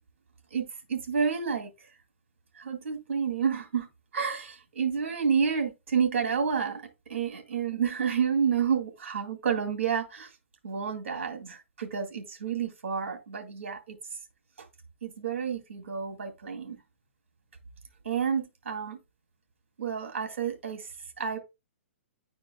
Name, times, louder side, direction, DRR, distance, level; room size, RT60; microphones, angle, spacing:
voice 1, 0.5-1.9 2.6-3.9 4.1-6.8 7.1-10.3 10.6-14.0 15.0-16.8 18.0-19.0 19.8-20.9 21.2-21.4, right 6 dB, 70° right, 2.2 m, -30 dB
11.0 x 4.4 x 2.3 m
hypercardioid pair, 135°, 7 cm